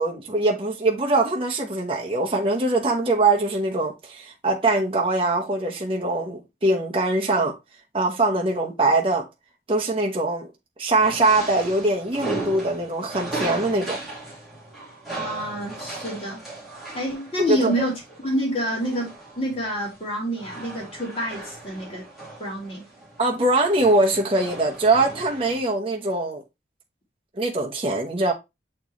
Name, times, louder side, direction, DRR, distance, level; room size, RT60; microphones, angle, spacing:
voice 1, 0.0-7.5 7.9-9.3 9.7-10.5 10.8-14.0 17.5-17.9 23.2-26.4 27.4-28.3, right 2 dB, 30° right, 1.0 m, -22 dB
sound 1, 11.0-25.6, right 2 dB, ahead, 2.5 m, -37 dB
voice 2, 15.1-16.4 16.9-17.9 18.2-22.0 22.4-22.8, equal, 30° left, 2.7 m, -28 dB
7.1 x 4.5 x 3.1 m
head